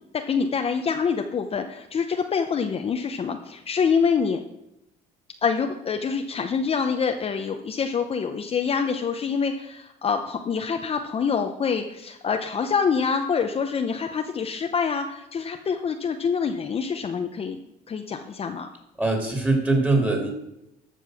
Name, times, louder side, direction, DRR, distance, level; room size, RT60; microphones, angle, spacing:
voice 1, 0.1-4.4 5.4-17.6 17.9-18.7, left 6 dB, 35° left, 5 dB, 0.7 m, -26 dB
voice 2, 19.0-20.3, right 2 dB, 10° right, 2 dB, 2.8 m, -22 dB
13.5 x 5.3 x 6.3 m, 0.85 s
cardioid pair, 110°, 17 cm